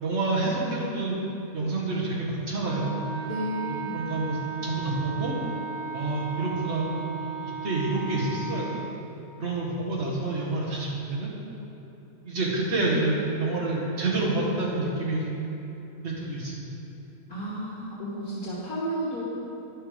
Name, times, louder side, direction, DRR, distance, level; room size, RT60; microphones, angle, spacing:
voice 1, 0.0-1.2 1.5-3.0 3.7-5.3 5.9-8.9 9.4-11.3 12.3-15.4 16.0-16.8, right 2 dB, 45° right, -5 dB, 1.9 m, -28 dB
Wind instrument woodwind instrument, 2.6-9.0, right 5 dB, 85° right, 1.1 m, -36 dB
voice 2, 3.2-4.0 17.3-19.2, equal, 70° left, -8 dB, 1.8 m, -32 dB
11.0 x 5.8 x 5.2 m, 3.0 s
omnidirectional pair, 1.6 m